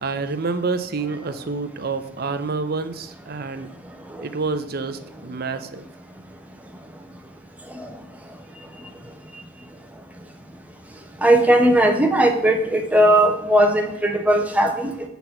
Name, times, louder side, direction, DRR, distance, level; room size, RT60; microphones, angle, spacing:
voice 1, 0.0-3.7 4.2-5.8, right 4 dB, 50° right, 10 dB, 0.6 m, -28 dB
voice 2, 11.2-14.9, right 1 dB, 5° right, 3 dB, 1.0 m, -17 dB
8.0 x 4.2 x 5.8 m, 0.87 s
head